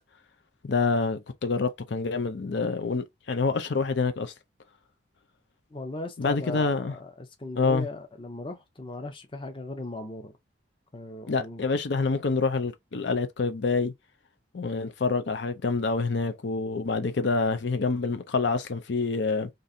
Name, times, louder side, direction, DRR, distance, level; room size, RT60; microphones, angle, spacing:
voice 1, 0.6-4.3 6.2-6.9 7.6-7.8 11.3-13.9 14.5-19.5, left 4 dB, 70° left, 0.6 m, -27 dB
voice 2, 5.7-10.3 10.9-11.6, left 2 dB, 25° left, 0.7 m, -38 dB
3.9 x 2.6 x 4.2 m
head